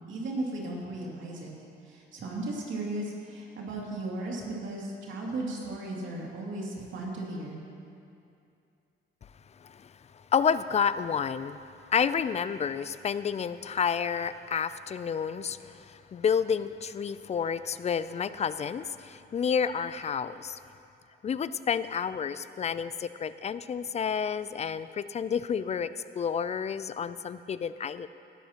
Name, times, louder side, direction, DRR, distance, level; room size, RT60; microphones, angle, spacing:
voice 1, 0.1-1.5 1.8-7.6, right 2 dB, 75° right, -3 dB, 2.6 m, -36 dB
voice 2, 10.3-11.6 11.9-20.6 21.2-25.9 26.2-28.1, left 7 dB, 35° left, 14 dB, 0.4 m, -30 dB
18.0 x 11.5 x 2.9 m, 2.6 s
cardioid pair, 90°, 20 cm